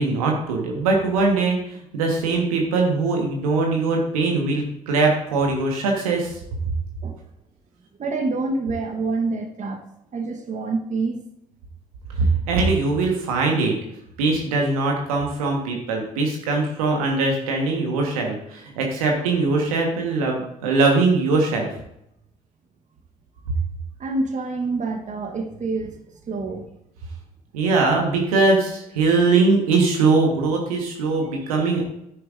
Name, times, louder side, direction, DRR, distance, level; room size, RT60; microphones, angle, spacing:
voice 1, 0.0-6.4 6.6-6.7 12.2-13.7 14.2-21.7 27.5-31.8, right 3 dB, 80° right, 1 dB, 1.4 m, -21 dB
voice 2, 8.0-9.8 10.1-11.2 24.0-26.0 26.3-26.7, right 3 dB, 40° right, 4 dB, 1.2 m, -26 dB
10.0 x 9.2 x 2.6 m, 0.79 s
figure-of-eight pair, 45°, 18 cm